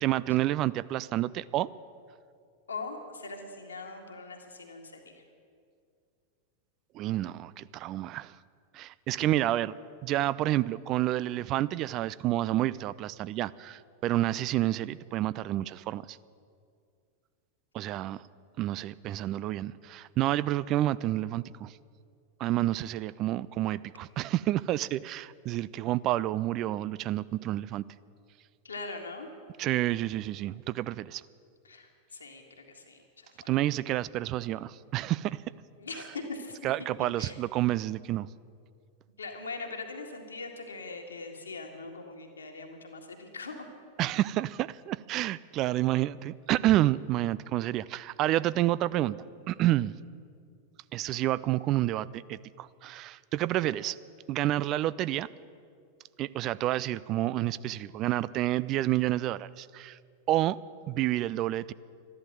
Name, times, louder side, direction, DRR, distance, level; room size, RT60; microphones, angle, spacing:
voice 1, 0.0-1.8 6.9-8.3 8.7-9.7 10.0-16.2 17.7-18.2 18.6-21.7 22.4-27.8 29.6-31.2 33.5-35.4 36.6-38.3 44.0-49.2 49.5-49.9 50.9-54.0 54.3-55.3 56.2-60.0 60.3-60.6 60.9-61.7, right 14 dB, 35° right, 18 dB, 0.3 m, -29 dB
voice 2, 2.7-5.2 28.6-29.3 31.6-33.5 35.8-36.6 37.2-37.4 39.2-43.7 53.6-53.7, left 3 dB, 75° left, 3 dB, 1.9 m, -41 dB
13.0 x 11.0 x 9.0 m, 2.2 s
figure-of-eight pair, 90°, 0 cm